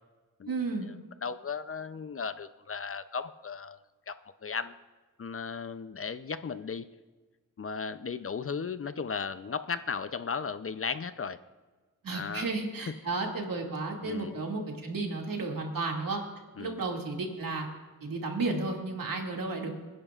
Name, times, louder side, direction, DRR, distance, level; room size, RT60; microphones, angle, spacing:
voice 1, 0.5-0.9 12.0-16.2 16.6-17.7 18.0-19.7, right 3 dB, 75° right, 0 dB, 2.4 m, -33 dB
voice 2, 1.2-3.8 4.1-4.2 4.4-4.8 5.2-6.9 7.6-11.4 12.1-12.5 12.9-13.0 14.0-14.4 16.6-16.8, left 5 dB, 40° left, 12 dB, 0.6 m, -36 dB
26.5 x 10.5 x 2.5 m, 1.3 s
cardioid pair, 75°, 34 cm